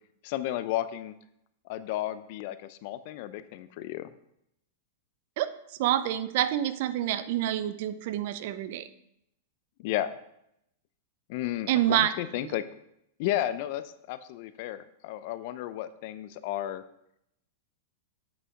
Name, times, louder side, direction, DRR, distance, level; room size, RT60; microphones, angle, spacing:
voice 1, 0.2-1.1 1.7-4.1 9.8-10.1 11.3-12.6 13.2-16.8, left 13 dB, 55° left, 14 dB, 0.6 m, -33 dB
voice 2, 5.8-8.9 11.7-12.1 12.4-12.5, right 12 dB, 60° right, 13 dB, 0.6 m, -27 dB
8.3 x 6.2 x 4.6 m, 0.78 s
hypercardioid pair, 115°, 0 cm